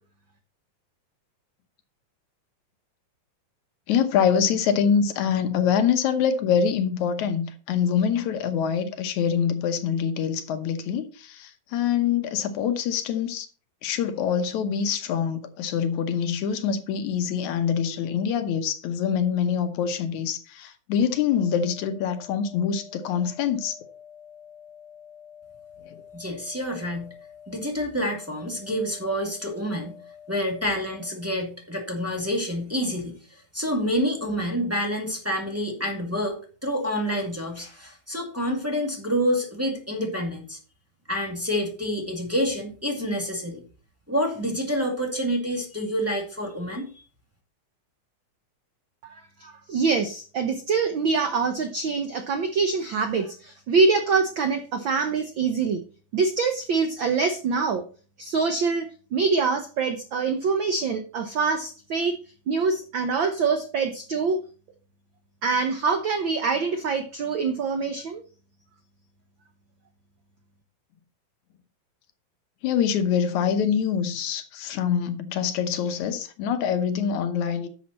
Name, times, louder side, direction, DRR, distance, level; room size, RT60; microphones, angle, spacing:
voice 1, 3.9-13.5 13.8-23.8 25.9-26.0 72.6-77.7, left 7 dB, 75° left, 2.3 m, -25 dB
sound 1, 21.2-31.2, left 8 dB, 20° left, 3.0 m, -48 dB
voice 2, 26.1-27.1 27.5-30.0 30.3-33.1 33.5-40.6 41.1-43.6 44.1-46.8, equal, 5° right, 1.6 m, -28 dB
voice 3, 49.4-55.8 56.1-57.8 58.2-58.9 59.1-62.2 62.5-64.4 65.4-68.2, right 4 dB, 80° right, 1.1 m, -24 dB
10.5 x 7.0 x 4.2 m
omnidirectional pair, 3.4 m